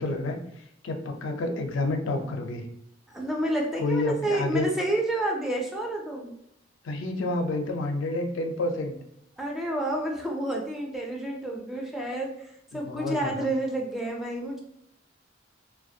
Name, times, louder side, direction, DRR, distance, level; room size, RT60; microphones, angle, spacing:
voice 1, 0.0-2.6 3.8-4.7 6.8-9.0 12.7-13.5, left 2 dB, 90° left, 4 dB, 0.4 m, -29 dB
voice 2, 3.1-6.3 9.4-14.6, right 1 dB, ahead, -1 dB, 0.3 m, -30 dB
2.4 x 2.1 x 2.6 m, 0.75 s
head